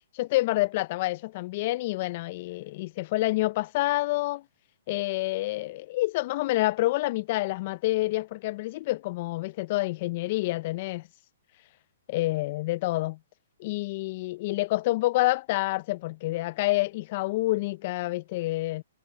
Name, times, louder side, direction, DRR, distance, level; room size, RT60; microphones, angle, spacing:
voice 1, 0.1-4.4 4.9-11.0 12.1-13.2 13.6-18.8, left 19 dB, 45° left, 0.6 m, -28 dB
hypercardioid pair, 130°, 0 cm